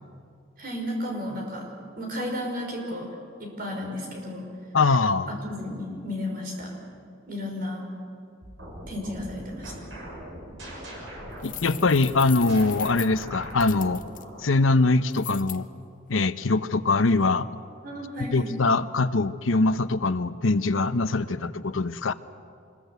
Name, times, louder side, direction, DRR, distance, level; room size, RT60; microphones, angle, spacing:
voice 1, 0.6-1.7 2.0-3.1 3.4-4.5 5.3-6.7 7.3-7.9 8.9-9.7 17.8-18.5, left 1 dB, 45° right, 1 dB, 5.5 m, -33 dB
voice 2, 4.7-5.3 11.4-14.0 14.4-15.7 16.1-17.5 18.2-22.1, left 3 dB, 90° left, 12 dB, 0.8 m, -23 dB
sound 1, 8.4-14.6, equal, 75° right, 6.8 m, -41 dB
sound 2, 11.4-14.2 15.1-15.6, left 14 dB, 40° left, 0.8 m, -39 dB
25.5 x 21.0 x 8.3 m, 2.4 s
head